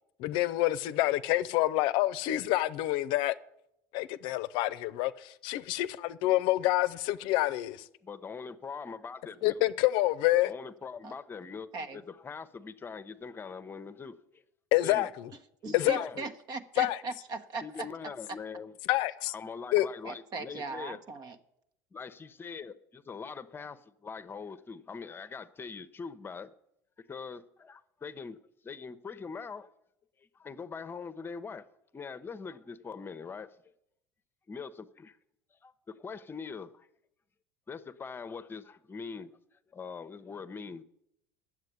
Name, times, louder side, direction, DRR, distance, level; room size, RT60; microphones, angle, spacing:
voice 1, 0.2-3.4 3.9-7.8 9.4-10.5 14.7-15.3 15.7-16.1 16.8-17.0 18.9-19.3 19.7-19.9, left 16 dB, 65° left, 0.5 m, -27 dB
voice 2, 8.0-9.6 10.4-14.4 14.8-15.1 15.6-16.2 17.6-18.7 19.3-21.0 21.9-26.5 27.1-28.4 28.6-29.7 30.3-31.7 31.9-33.5 34.5-35.2 35.6-36.9 37.7-40.8, left 5 dB, 25° left, 0.8 m, -42 dB
voice 3, 15.6-17.9 19.8-21.4, right 3 dB, 50° right, 1.2 m, -39 dB
9.6 x 7.5 x 9.3 m
supercardioid pair, 95°, 9 cm